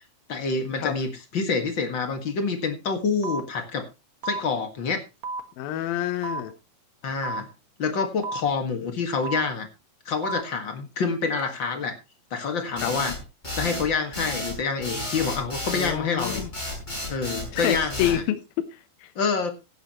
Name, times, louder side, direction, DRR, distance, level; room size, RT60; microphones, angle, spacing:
voice 1, 0.3-3.9 4.2-5.0 7.0-7.5 7.8-9.7 10.1-11.9 12.3-13.1 13.6-16.4 17.1-18.2 19.2-19.5, left 5 dB, 45° left, 6 dB, 1.7 m, -27 dB
sound 1, 3.2-3.4 4.2-4.4 5.2-5.4 6.2-6.4 7.2-7.4 8.2-8.4 9.2-9.4 10.2-10.4 11.2-11.4, right 3 dB, 50° right, 1.5 m, -31 dB
voice 2, 5.6-6.5 12.8-12.9 15.7-16.5 17.5-19.1, left 12 dB, 70° left, 10 dB, 2.6 m, -28 dB
sound 2, 12.8-18.2, left 1 dB, 10° left, 6.4 m, -32 dB
16.0 x 11.5 x 3.0 m, 0.28 s
omnidirectional pair, 4.6 m